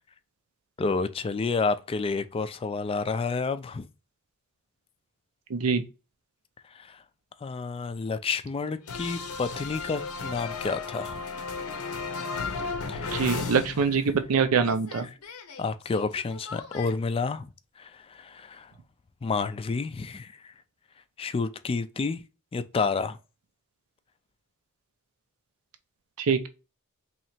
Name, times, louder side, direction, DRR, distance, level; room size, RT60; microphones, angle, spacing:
voice 1, 0.8-3.9 6.7-7.0 7.4-11.2 12.9-13.4 15.0-15.1 15.6-17.5 17.8-18.7 19.2-20.5 21.2-22.2 22.5-23.2, left 4 dB, 25° left, 0.3 m, -30 dB
voice 2, 5.5-5.8 13.1-15.1 26.2-26.5, right 5 dB, 85° right, 0.5 m, -24 dB
sound 1, 8.9-14.3 14.6-16.9, left 4 dB, 85° left, 0.7 m, -35 dB
3.1 x 2.8 x 4.2 m
head